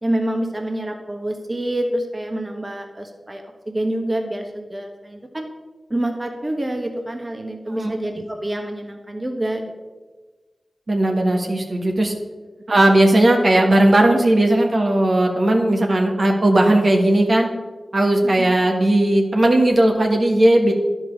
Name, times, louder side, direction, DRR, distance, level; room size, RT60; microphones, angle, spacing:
voice 1, 0.0-5.4 5.9-9.7 18.2-18.4, right 1 dB, 30° right, 3 dB, 1.4 m, -27 dB
voice 2, 10.9-12.1 12.7-17.5 17.9-20.7, right 1 dB, 60° right, 1 dB, 1.4 m, -17 dB
10.5 x 5.3 x 6.5 m, 1.3 s
cardioid pair, 40°, 0 cm